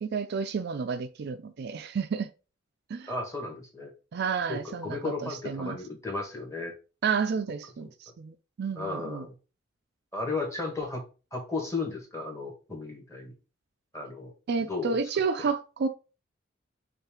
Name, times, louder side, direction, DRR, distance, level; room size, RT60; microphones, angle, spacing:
voice 1, 0.0-2.3 2.9-3.1 4.1-5.8 7.0-9.3 14.5-15.9, right 5 dB, 55° right, 0.4 m, -31 dB
voice 2, 3.1-3.9 4.5-6.7 8.8-9.3 10.1-11.0 11.3-13.3 13.9-14.3 14.6-15.0 15.4-15.5, left 3 dB, 15° left, 1.5 m, -34 dB
5.4 x 2.5 x 3.6 m
head